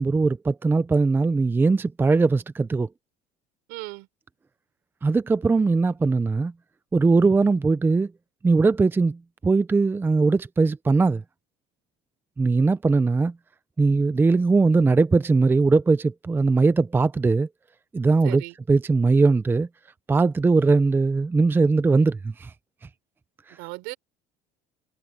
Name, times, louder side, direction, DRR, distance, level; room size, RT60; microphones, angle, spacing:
voice 1, 0.0-2.9 5.0-6.5 6.9-8.1 8.4-11.2 12.4-13.3 13.8-17.5 17.9-18.4 18.7-19.7 20.1-22.5, right 3 dB, 15° right, 0.5 m, -20 dB
voice 2, 3.7-4.1 18.2-18.6 23.5-24.0, right 25 dB, 80° right, 5.3 m, -36 dB
cardioid pair, 125°, 16 cm